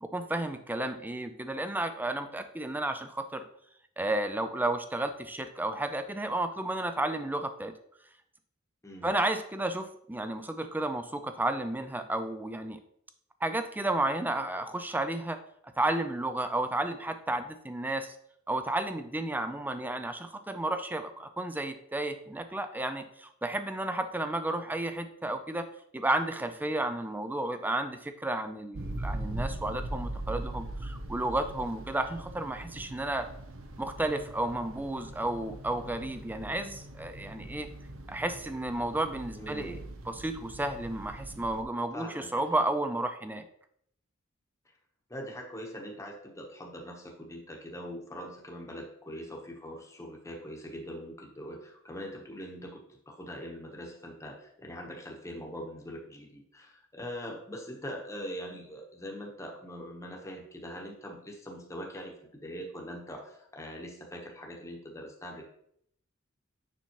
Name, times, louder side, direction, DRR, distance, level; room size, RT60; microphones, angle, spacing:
voice 1, 0.0-3.4 4.0-7.7 9.0-12.8 13.4-15.4 15.8-18.2 18.5-25.7 25.9-33.3 33.8-37.7 38.1-39.8 40.1-43.4, right 2 dB, 10° right, 9 dB, 0.4 m, -32 dB
sound 1, 28.7-41.6, right 1 dB, 85° right, 0.8 m, -41 dB
voice 2, 39.3-39.9 41.9-42.6 45.1-65.5, equal, 15° left, 0 dB, 1.0 m, -42 dB
7.0 x 5.6 x 3.0 m, 0.70 s
head